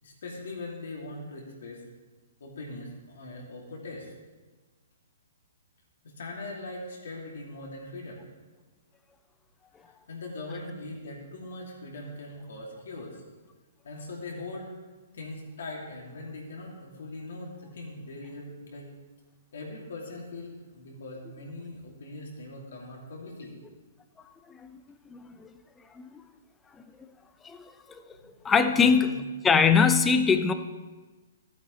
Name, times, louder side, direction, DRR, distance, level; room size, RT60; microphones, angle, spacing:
voice 1, 0.0-1.8 2.4-4.1 6.0-8.2 10.1-13.2 13.8-14.7 15.1-18.9 19.5-23.6 28.1-28.3 28.7-29.2, left 2 dB, 70° left, -2 dB, 2.6 m, -41 dB
voice 2, 24.5-24.8 25.1-25.5 25.9-26.2 27.0-27.1 27.4-27.7 28.4-29.1 29.4-30.5, left 5 dB, 15° left, 9 dB, 0.6 m, -22 dB
14.5 x 8.4 x 3.2 m, 1.3 s
hypercardioid pair, 125°, 0 cm